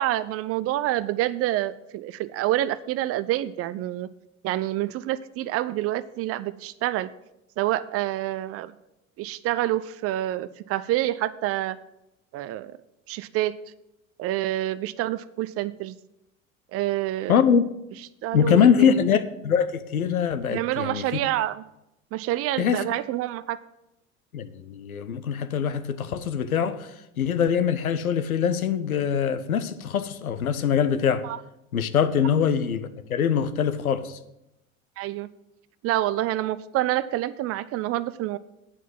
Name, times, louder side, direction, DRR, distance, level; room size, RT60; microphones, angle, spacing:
voice 1, 0.0-4.1 4.4-7.1 7.6-8.7 9.2-11.8 12.3-12.7 13.1-13.5 14.2-15.9 16.7-17.4 18.2-19.0 20.5-21.6 22.1-23.6 31.2-31.4 35.0-35.3 35.8-38.4, right 14 dB, 35° right, 0.5 m, -27 dB
voice 2, 17.3-17.6 18.3-21.1 22.6-22.8 24.3-31.2 31.7-34.2, left 7 dB, 80° left, 0.7 m, -23 dB
9.1 x 5.7 x 7.4 m
figure-of-eight pair, 70°, 42 cm